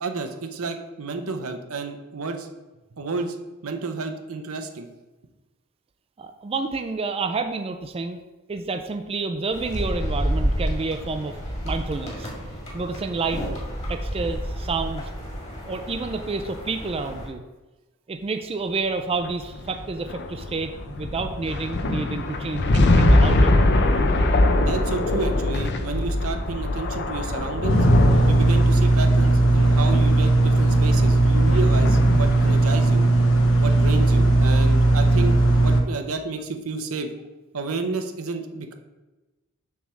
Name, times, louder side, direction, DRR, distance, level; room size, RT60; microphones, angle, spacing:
voice 1, 0.0-2.5 3.0-3.4 3.6-4.9 24.6-27.9 28.3-33.1 33.6-37.1 37.5-38.7, right 3 dB, 85° right, 6 dB, 0.8 m, -30 dB
voice 2, 6.2-8.2 8.5-11.4 11.6-12.3 12.7-13.4 13.9-15.0 15.7-17.4 18.1-23.5, right 3 dB, 25° right, 6 dB, 0.4 m, -29 dB
Grasshoppers Alps, 9.5-17.3, equal, 30° left, 2.0 m, -30 dB
sound 1, 19.1-32.7, left 2 dB, 50° left, 0.6 m, -22 dB
sound 2, 27.7-35.8, right 2 dB, 70° left, 0.9 m, -18 dB
7.1 x 3.5 x 6.2 m, 1.1 s
head